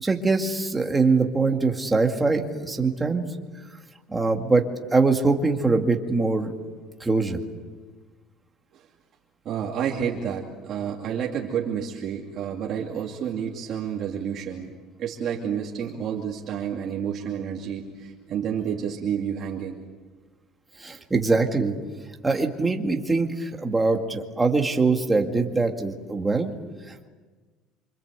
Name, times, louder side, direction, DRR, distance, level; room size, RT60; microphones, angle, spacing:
voice 1, 0.0-3.2 4.1-4.6 4.9-6.5 7.0-7.4 20.8-21.7 22.2-26.5, right 3 dB, 10° right, 2 dB, 2.1 m, -23 dB
voice 2, 9.4-14.7 15.0-19.7 21.1-21.2, right 8 dB, 40° right, -1 dB, 2.5 m, -30 dB
28.0 x 26.0 x 8.2 m, 1.4 s
cardioid pair, 175°, 0 cm